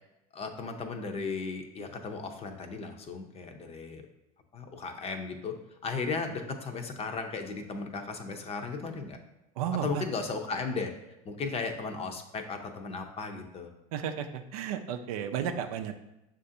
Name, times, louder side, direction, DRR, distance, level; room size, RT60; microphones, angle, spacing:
voice 1, 0.3-4.0 4.5-5.5 5.8-9.2 9.8-10.9 11.2-13.7, left 4 dB, 35° left, 5 dB, 0.6 m, -35 dB
voice 2, 9.6-10.0 13.9-16.0, right 8 dB, 80° right, 7 dB, 0.4 m, -33 dB
6.6 x 2.5 x 2.7 m, 0.93 s
hypercardioid pair, 90°, 19 cm